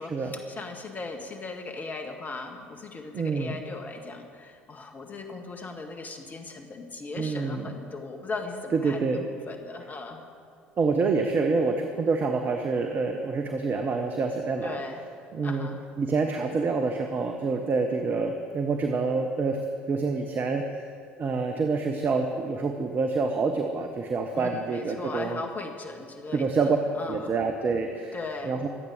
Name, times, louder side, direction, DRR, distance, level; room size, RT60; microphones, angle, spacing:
voice 1, 0.0-10.2 14.6-15.0 15.4-15.8 24.3-27.4 28.1-28.6, left 3 dB, 30° left, 3 dB, 1.6 m, -38 dB
voice 2, 3.1-3.6 7.2-7.7 8.8-9.2 10.8-14.8 15.3-15.7 16.0-19.6 19.9-20.7 21.2-25.4 26.3-26.8 27.1-28.1 28.4-28.7, right 4 dB, 35° right, 4 dB, 1.1 m, -27 dB
24.0 x 8.6 x 5.1 m, 2.5 s
figure-of-eight pair, 65°, 6 cm